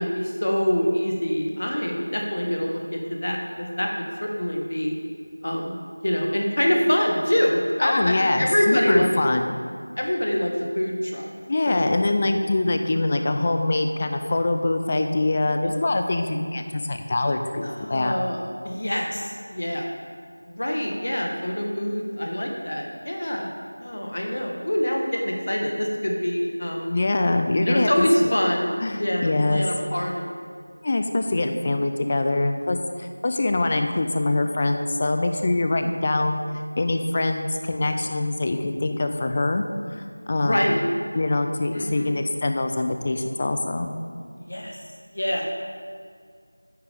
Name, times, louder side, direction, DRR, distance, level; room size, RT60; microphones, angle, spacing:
voice 1, 0.0-4.9 5.4-9.1 10.0-11.3 11.7-12.0 17.6-19.9 20.5-23.5 23.8-26.9 27.6-30.3 40.4-40.8 41.7-42.1 44.3-44.8 45.1-45.6, equal, 45° left, 1 dB, 1.6 m, -25 dB
voice 2, 7.8-9.6 11.5-18.2 26.9-28.1 28.8-29.6 30.8-36.4 36.8-39.6 40.0-40.6 41.1-43.9, left 2 dB, 20° left, 6 dB, 0.5 m, -24 dB
9.5 x 8.1 x 5.2 m, 2.1 s
figure-of-eight pair, 175°, 0 cm